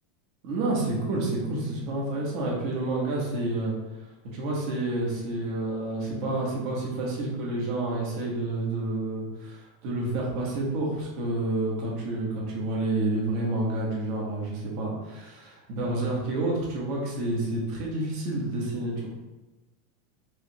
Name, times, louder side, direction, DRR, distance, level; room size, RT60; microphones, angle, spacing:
voice 1, 0.4-3.7 4.3-19.1, right 2 dB, 50° right, -3 dB, 1.3 m, -29 dB
4.9 x 2.5 x 2.9 m, 1.1 s
supercardioid pair, 155°, 0 cm